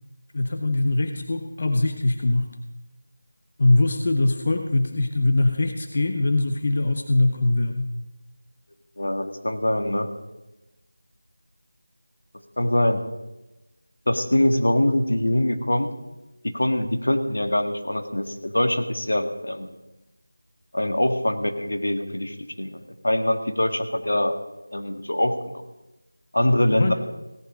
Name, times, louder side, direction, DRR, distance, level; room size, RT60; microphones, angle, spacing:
voice 1, 0.3-2.5 3.6-7.9 26.7-26.9, left 2 dB, 40° left, 6 dB, 0.9 m, -22 dB
voice 2, 9.0-10.1 12.6-13.0 14.1-15.9 16.4-19.7 20.7-24.3 24.7-25.6 26.3-26.9, left 1 dB, 75° left, 6 dB, 1.7 m, -23 dB
17.0 x 10.0 x 5.1 m, 1.0 s
figure-of-eight pair, 170°, 0 cm